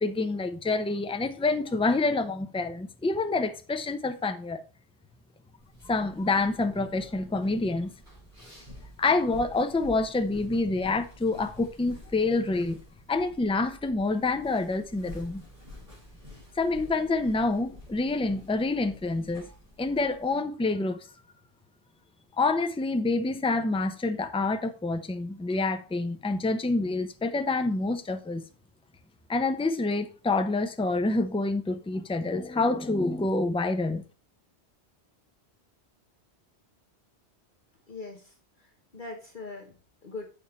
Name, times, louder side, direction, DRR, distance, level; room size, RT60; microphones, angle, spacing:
voice 1, 0.0-4.6 5.8-7.9 9.0-12.8 13.1-15.4 16.6-19.5 19.8-21.0 22.4-28.4 29.3-34.0, left 3 dB, 10° left, 0.4 m, -27 dB
sound 1, 5.6-20.3, left 1 dB, 45° right, 4.7 m, -50 dB
voice 2, 37.9-40.3, left 3 dB, 50° left, 1.2 m, -42 dB
7.1 x 5.5 x 4.4 m
omnidirectional pair, 1.1 m